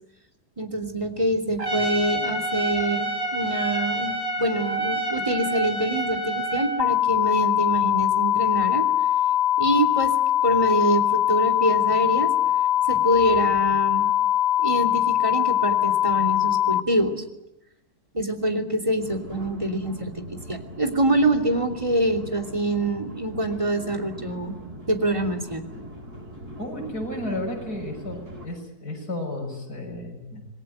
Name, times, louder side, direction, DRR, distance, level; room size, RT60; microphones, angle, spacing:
voice 1, 0.6-8.8 9.6-10.1 10.4-12.3 12.9-14.1 14.6-17.2 18.1-20.2 20.5-24.5 24.9-25.6, right 1 dB, 20° right, 3 dB, 3.0 m, -25 dB
Trumpet, 1.6-6.8, right 2 dB, 40° right, 3.8 m, -28 dB
sound 1, 6.8-16.8, left 12 dB, 45° left, 1.3 m, -22 dB
sound 2, 19.0-28.5, equal, 80° right, 8.7 m, -41 dB
voice 2, 26.6-30.5, left 1 dB, 90° left, 2 dB, 7.0 m, -33 dB
27.5 x 21.0 x 9.1 m, 0.87 s
omnidirectional pair, 1.6 m